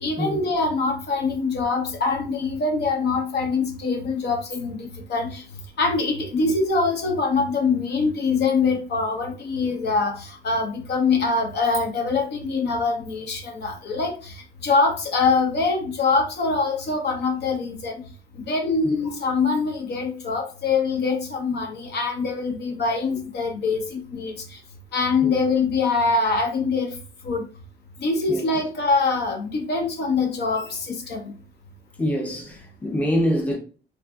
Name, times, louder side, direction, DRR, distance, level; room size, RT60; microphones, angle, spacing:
voice 1, 0.0-5.4 5.8-14.3 14.6-17.9 18.5-24.3 24.9-26.9 27.2-27.5 28.0-31.2, left 4 dB, 55° left, 0.7 m, -24 dB
voice 2, 32.0-33.6, equal, 5° left, 0.7 m, -25 dB
2.6 x 2.5 x 2.3 m
cardioid pair, 90°, 20 cm